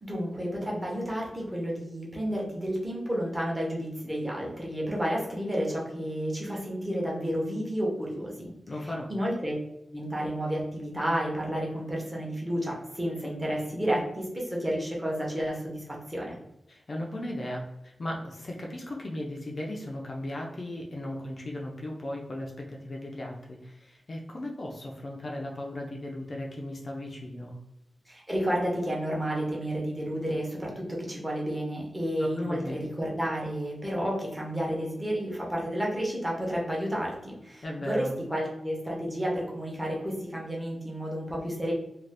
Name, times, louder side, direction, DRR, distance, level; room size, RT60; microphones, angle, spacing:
voice 1, 0.0-8.5 8.8-9.6 9.9-16.4 28.1-41.7, equal, 15° right, -3 dB, 0.8 m, -31 dB
voice 2, 8.7-9.1 16.7-27.5 32.2-32.8 37.6-38.1, left 1 dB, 40° left, -1 dB, 0.4 m, -36 dB
2.5 x 2.4 x 3.3 m, 0.87 s
wide cardioid pair, 155°, 0 cm